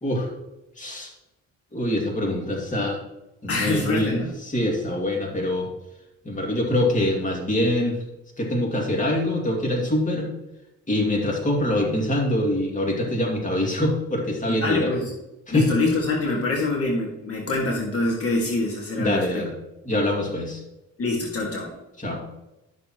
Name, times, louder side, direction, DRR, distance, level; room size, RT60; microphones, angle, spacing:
voice 1, 0.0-0.3 0.8-1.1 1.7-3.0 3.4-5.7 6.2-7.9 8.4-10.3 10.9-14.9 15.5-15.6 19.0-19.5 19.8-20.6 22.0-22.2, left 1 dB, 25° left, 0 dB, 2.4 m, -24 dB
voice 2, 3.5-4.3 14.5-15.1 15.5-19.4 21.0-21.7, left 3 dB, 50° left, -2 dB, 2.1 m, -25 dB
12.0 x 6.8 x 3.1 m, 0.95 s
cardioid pair, 90°, 30 cm